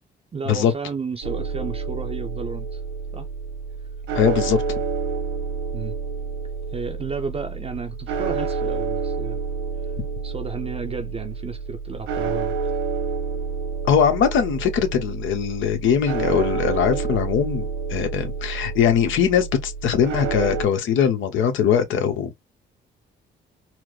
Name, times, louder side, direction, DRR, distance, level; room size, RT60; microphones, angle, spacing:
voice 1, 0.3-2.8 3.1-3.3 5.7-5.9 6.7-9.4 10.2-12.5, right 5 dB, 30° right, 0.5 m, -32 dB
sound 1, 1.2-20.6, right 5 dB, 85° right, 1.1 m, -29 dB
voice 2, 4.1-4.6 13.8-22.4, left 8 dB, 75° left, 1.0 m, -21 dB
4.5 x 2.0 x 2.2 m
cardioid pair, 90°, 20 cm